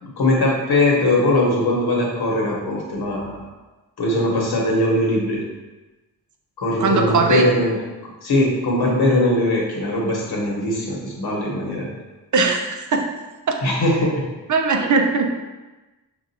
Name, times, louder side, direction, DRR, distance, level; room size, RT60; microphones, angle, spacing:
voice 1, 0.0-3.4 4.0-5.5 6.6-7.8 8.2-11.9 13.6-14.3, left 1 dB, 85° left, -3 dB, 1.1 m, -20 dB
voice 2, 6.8-7.5 12.3-13.1 13.5-13.6 14.5-15.4, right 4 dB, 50° right, 3 dB, 0.5 m, -19 dB
6.0 x 2.5 x 2.7 m, 1.1 s
wide cardioid pair, 145°, 37 cm